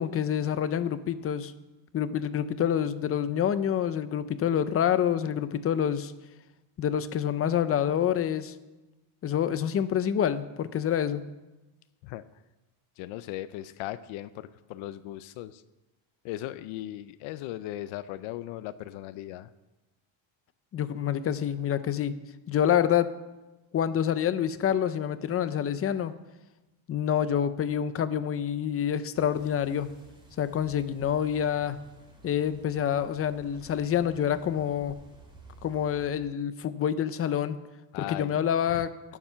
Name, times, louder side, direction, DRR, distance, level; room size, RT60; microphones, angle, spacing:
voice 1, 0.0-1.5 1.9-6.1 6.8-8.5 9.2-11.2 20.7-22.1 22.5-23.1 23.7-26.1 26.9-29.9 30.4-31.8 32.2-34.9 35.6-37.6 38.1-38.9, left 9 dB, 30° left, 13 dB, 0.5 m, -27 dB
voice 2, 13.0-15.6 16.2-19.5 37.9-38.4 38.7-38.8, left 14 dB, 75° left, 13 dB, 0.7 m, -38 dB
sound 1, 29.1-36.1, right 2 dB, 10° right, 2.4 m, -53 dB
17.0 x 7.2 x 5.6 m, 1.1 s
cardioid pair, 145°, 49 cm